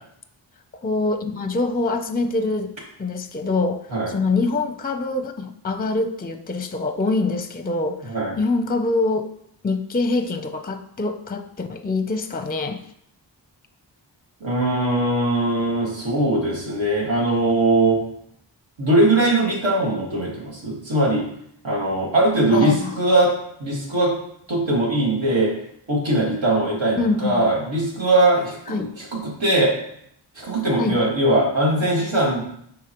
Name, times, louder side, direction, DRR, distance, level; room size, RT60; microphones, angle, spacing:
voice 1, 0.8-2.7 3.0-8.0 8.4-9.3 9.6-12.8 22.5-23.0 27.0-27.4 28.7-28.9 30.8-31.0, left 3 dB, 20° left, 9 dB, 0.5 m, -24 dB
voice 2, 14.4-18.0 18.8-21.2 21.6-23.3 23.6-24.1 24.5-25.5 25.9-29.7 30.4-32.4, right 1 dB, 75° right, -4 dB, 1.9 m, -20 dB
10.0 x 3.8 x 3.0 m, 0.71 s
wide cardioid pair, 65°, 45 cm